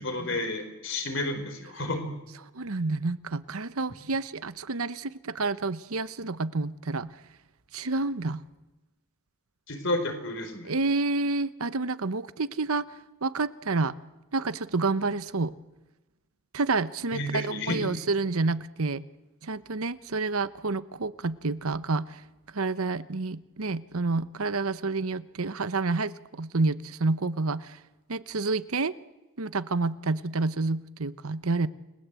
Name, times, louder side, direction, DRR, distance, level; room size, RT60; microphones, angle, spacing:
voice 1, 0.0-2.1 9.7-10.7 17.1-17.9, left 2 dB, 55° left, 7 dB, 4.7 m, -31 dB
voice 2, 2.5-7.1 7.7-8.4 10.6-12.9 13.2-14.0 14.3-15.6 16.5-19.0 19.4-22.2 22.5-27.8 28.1-28.9 29.4-31.7, right 3 dB, 75° right, 15 dB, 1.0 m, -29 dB
29.5 x 20.5 x 8.3 m, 1.1 s
head